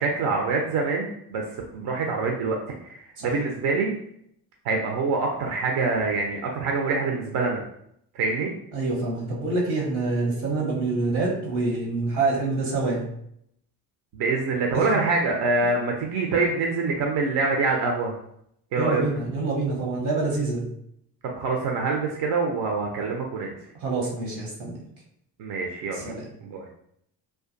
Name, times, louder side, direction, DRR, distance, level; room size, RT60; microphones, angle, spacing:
voice 1, 0.0-3.9 4.6-7.6 8.1-8.5 14.1-18.2 18.7-19.0 21.3-23.5 25.4-26.1 26.4-26.6, right 3 dB, 60° right, 1 dB, 0.5 m, -25 dB
voice 2, 8.7-13.1 14.7-14.9 18.8-20.7 23.8-24.8 25.9-26.2, right 3 dB, 80° right, -3 dB, 1.0 m, -26 dB
2.4 x 2.3 x 2.5 m, 0.72 s
hypercardioid pair, 45°, 45 cm